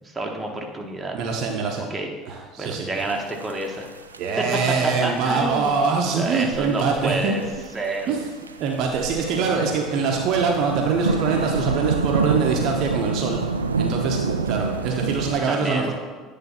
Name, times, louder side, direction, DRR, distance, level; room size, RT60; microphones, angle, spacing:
voice 1, 0.0-1.2 1.9-2.1 2.6-3.9 4.4-4.5 4.8-5.8 6.0-7.4 7.7-8.1 14.9-15.9, right 2 dB, 15° right, 1 dB, 1.2 m, -29 dB
voice 2, 1.1-1.8 2.3-2.9 4.2-7.4 8.1-8.2 8.6-13.4 13.8-15.9, right 5 dB, 55° right, 1 dB, 0.8 m, -24 dB
sound 1, 3.0-15.3, right 4 dB, 90° right, 0.3 m, -28 dB
9.2 x 3.4 x 5.6 m, 1.4 s
figure-of-eight pair, 65°, 0 cm